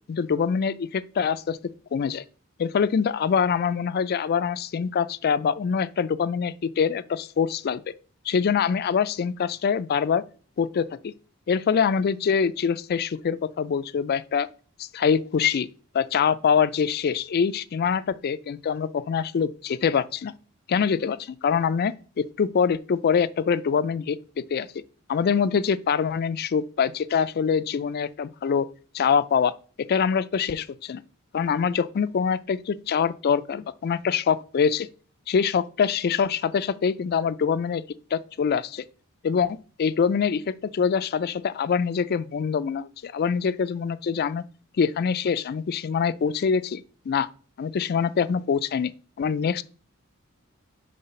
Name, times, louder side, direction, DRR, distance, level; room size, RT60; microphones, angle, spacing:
voice 1, 0.1-1.6 1.9-2.2 2.6-7.8 8.3-10.2 10.6-11.1 11.5-14.5 14.8-15.7 15.9-20.3 20.7-24.7 25.1-28.7 28.9-29.5 29.8-31.0 31.3-34.9 35.3-37.8 38.1-38.8 39.2-44.4 44.8-47.3 47.6-48.9 49.2-49.6, left 6 dB, 50° left, 0.3 m, -24 dB
5.6 x 3.3 x 5.5 m
head